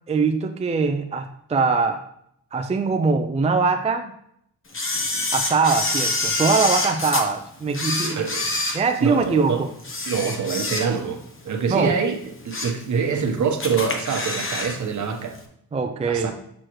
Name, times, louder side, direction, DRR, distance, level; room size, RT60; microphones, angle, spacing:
voice 1, 0.1-2.1 2.5-4.1 5.3-8.2 8.7-9.7 11.7-11.9 15.7-16.3, right 4 dB, 20° right, 5 dB, 0.5 m, -22 dB
Camera, 4.7-7.2 7.7-9.4 9.8-11.2 11.6-11.7 12.2-12.8 13.2-13.3 13.6-14.8 15.0-15.1, left 2 dB, 35° left, 1.1 m, -26 dB
voice 2, 9.0-9.6 10.1-11.2 11.4-12.2 12.4-15.4 16.1-16.3, right 6 dB, 55° right, 4 dB, 1.1 m, -25 dB
6.3 x 6.1 x 3.1 m, 0.71 s
cardioid pair, 80°, 35 cm